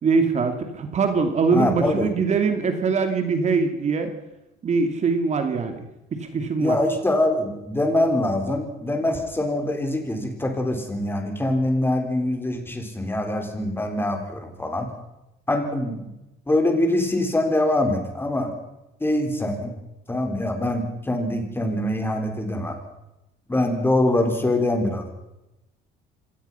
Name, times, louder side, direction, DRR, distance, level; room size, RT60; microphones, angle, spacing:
voice 1, 0.0-4.1 4.6-5.9 6.2-6.8, right 4 dB, 45° right, 7 dB, 2.7 m, -22 dB
voice 2, 1.5-2.1 6.6-14.9 15.5-16.1 16.5-18.5 19.0-19.7 20.1-22.8 23.5-25.1, left 1 dB, 15° left, 4 dB, 4.5 m, -24 dB
25.5 x 17.5 x 5.8 m, 0.93 s
cardioid pair, 110°, 17 cm